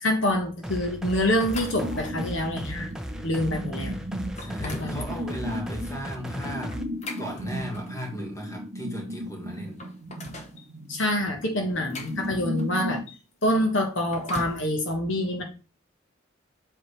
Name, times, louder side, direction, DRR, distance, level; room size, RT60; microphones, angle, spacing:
voice 1, 0.0-2.9 3.2-4.0 4.4-5.0 10.9-15.4, left 1 dB, 65° left, 1.2 m, -26 dB
sound 1, 0.6-6.8, equal, 5° right, 0.5 m, -36 dB
sound 2, 1.3-2.3 2.9-3.1 3.7-3.8 4.2-5.0 6.7-8.0 9.1-9.2 9.5-10.6 11.4-12.9 13.8-14.7, left 2 dB, 35° left, 0.9 m, -40 dB
sound 3, 1.6-13.1, equal, 80° right, 0.9 m, -36 dB
voice 2, 4.4-6.8 7.2-9.8, equal, 15° left, 1.7 m, -36 dB
7.7 x 4.0 x 3.2 m
head